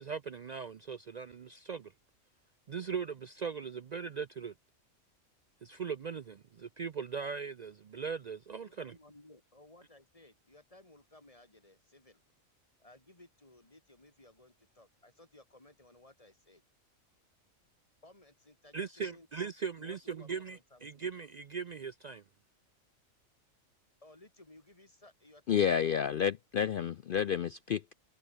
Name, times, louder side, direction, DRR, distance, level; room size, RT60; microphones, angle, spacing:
voice 1, 0.0-1.9 2.7-4.5 5.6-9.0 18.7-22.2, right 6 dB, 70° right, 0.4 m, -39 dB
voice 2, 8.6-12.2 12.8-16.6 18.0-19.3 19.8-21.0 24.0-26.0, left 2 dB, 25° left, 3.3 m, -59 dB
voice 3, 25.5-27.9, left 8 dB, 70° left, 0.5 m, -30 dB
omnidirectional pair, 1.4 m